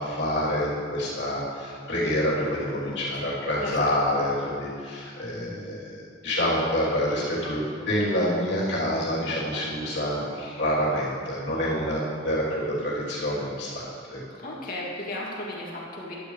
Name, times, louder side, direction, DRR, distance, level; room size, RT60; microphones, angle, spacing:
voice 1, 0.0-6.0 6.2-14.2, equal, 60° left, -6 dB, 3.1 m, -27 dB
voice 2, 2.9-3.3 3.6-4.0 14.3-16.1, left 1 dB, 45° left, -5 dB, 2.5 m, -35 dB
14.5 x 11.5 x 3.3 m, 2.3 s
head